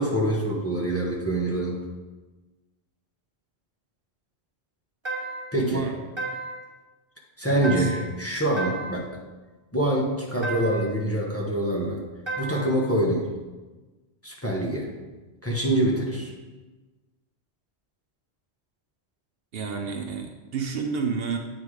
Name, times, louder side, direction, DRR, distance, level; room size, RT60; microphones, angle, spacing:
voice 1, 0.0-1.8 5.5-5.9 7.4-9.1 9.7-12.0 12.4-13.3 14.2-14.9 15.4-16.3, right 1 dB, 15° left, -3 dB, 1.0 m, -25 dB
sound 1, 5.0-5.6 6.2-6.7 7.6-8.2 8.6-9.1 10.4-11.0 12.3-12.8, right 2 dB, 25° right, 1.2 m, -33 dB
voice 2, 5.6-5.9 7.5-7.9 19.5-21.4, right 5 dB, 65° right, 4 dB, 0.8 m, -30 dB
8.2 x 3.8 x 4.8 m, 1.2 s
omnidirectional pair, 1.1 m